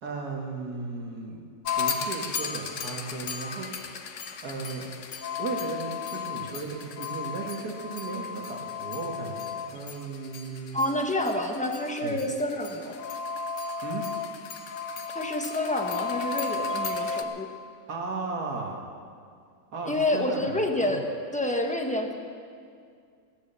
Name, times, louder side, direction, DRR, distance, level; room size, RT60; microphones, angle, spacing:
voice 1, 0.0-1.4 1.8-4.9 5.4-10.8 12.0-12.2 13.8-14.0 17.9-18.8 19.7-21.0, right 4 dB, 85° right, 1 dB, 2.3 m, -36 dB
sound 1, 1.6-17.2, left 5 dB, 60° left, 1.1 m, -34 dB
voice 2, 10.7-13.0 15.1-17.5 19.8-22.1, left 1 dB, 5° left, 3 dB, 1.0 m, -28 dB
17.5 x 10.0 x 6.9 m, 2.2 s
omnidirectional pair, 1.6 m